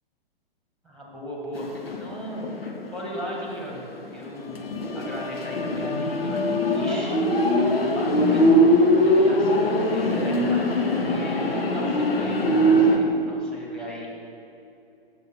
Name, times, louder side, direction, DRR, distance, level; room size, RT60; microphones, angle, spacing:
voice 1, 0.8-2.5 2.9-3.8 4.1-4.7 4.9-7.2 7.6-14.1, equal, ahead, -3 dB, 1.4 m, -37 dB
sound 1, 1.6-2.9 3.2-3.3 4.0-13.0, equal, 75° left, 0.9 m, -21 dB
7.1 x 7.0 x 4.2 m, 2.7 s
figure-of-eight pair, 115°, 29 cm